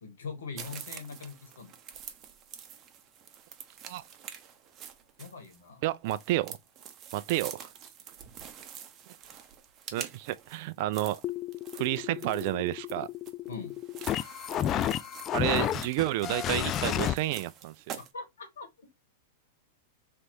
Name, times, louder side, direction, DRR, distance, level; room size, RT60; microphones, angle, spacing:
voice 1, 0.0-1.7 5.2-5.8 13.5-13.7 18.1-18.9, left 4 dB, 85° left, 1.8 m, -42 dB
sound 1, 0.6-18.1, right 8 dB, 35° right, 0.9 m, -46 dB
voice 2, 5.8-6.6 7.1-7.7 9.1-9.2 9.9-11.2 11.7-13.1 15.3-18.0, right 16 dB, 55° right, 0.4 m, -30 dB
sound 2, 11.2-17.1, left 11 dB, 35° left, 0.4 m, -32 dB
3.4 x 3.1 x 4.2 m
hypercardioid pair, 115°, 0 cm